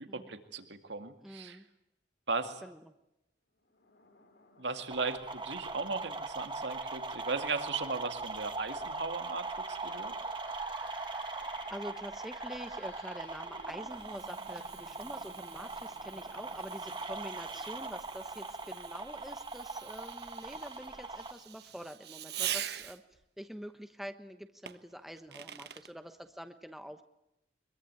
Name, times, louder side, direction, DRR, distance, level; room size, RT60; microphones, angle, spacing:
voice 1, 0.0-1.6 2.3-2.6 4.6-10.1, right 4 dB, 85° right, 7 dB, 2.3 m, -37 dB
voice 2, 1.2-1.7 2.6-2.9 11.3-11.4 11.7-23.0 23.4-27.0, equal, ahead, 7 dB, 1.1 m, -46 dB
sound 1, 3.6-20.0, left 4 dB, 85° left, 4.5 m, -59 dB
sound 2, 4.9-21.3, right 3 dB, 25° right, 1.8 m, -40 dB
Fireworks, 13.3-23.2 24.7-25.9, right 11 dB, 65° right, 1.2 m, -44 dB
24.0 x 22.5 x 9.5 m, 0.85 s
head